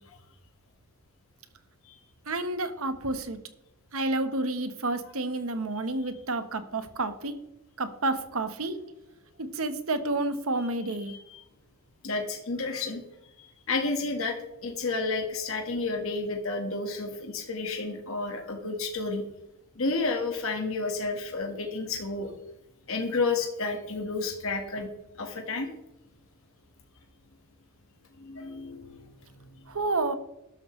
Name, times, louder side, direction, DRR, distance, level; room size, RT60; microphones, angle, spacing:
voice 1, 2.3-3.4 3.9-7.3 7.8-8.7 9.4-11.1 29.7-30.1, right 2 dB, 70° right, 9 dB, 1.2 m, -30 dB
voice 2, 11.1-11.4 12.0-13.0 13.4-14.4 14.6-19.2 19.8-22.3 22.9-24.9 25.2-25.7 28.2-29.6, left 3 dB, 65° left, 3 dB, 1.6 m, -31 dB
13.0 x 11.5 x 3.2 m, 0.86 s
head